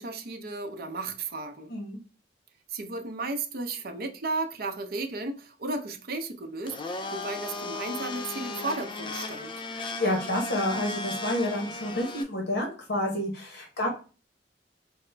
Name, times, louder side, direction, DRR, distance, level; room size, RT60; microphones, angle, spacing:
voice 1, 0.0-1.7 2.7-9.5, right 3 dB, 55° right, 0.6 m, -34 dB
Domestic sounds home sounds, 6.6-12.2, left 2 dB, 25° left, 0.3 m, -36 dB
voice 2, 9.7-13.9, left 1 dB, 65° left, 0.9 m, -29 dB
4.8 x 2.1 x 3.2 m
head